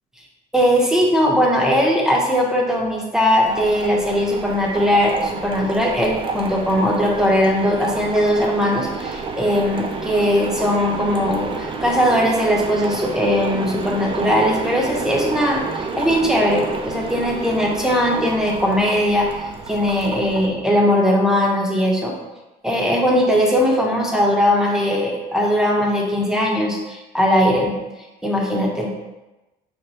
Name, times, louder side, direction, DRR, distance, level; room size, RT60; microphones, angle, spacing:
voice 1, 0.5-19.3 19.7-22.1 22.6-27.8 28.2-28.9, equal, 5° right, -2 dB, 0.8 m, -19 dB
sound 1, 3.4-20.5, right 4 dB, 30° right, 0.4 m, -30 dB
4.6 x 2.2 x 4.1 m, 1.1 s
cardioid pair, 110°, 17 cm